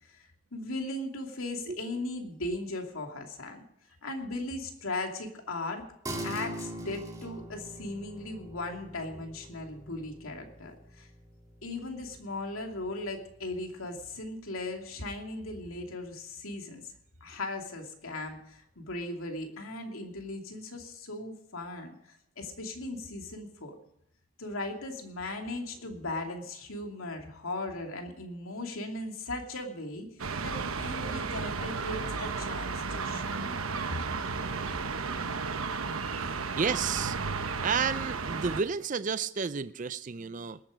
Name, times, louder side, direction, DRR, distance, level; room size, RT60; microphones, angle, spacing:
voice 1, 0.0-3.6 4.0-5.9 6.2-11.1 11.6-16.9 17.2-23.8 24.4-30.1 30.4-33.5 33.9-34.0, left 2 dB, 85° left, 2 dB, 2.7 m, -38 dB
sound 1, 6.0-15.8, right 1 dB, 15° right, 2.1 m, -44 dB
sound 2, 30.2-38.6, right 4 dB, 90° right, 1.1 m, -33 dB
voice 2, 36.6-37.2 37.6-40.6, right 6 dB, 35° right, 14 dB, 0.4 m, -31 dB
20.0 x 9.0 x 5.1 m, 0.75 s
head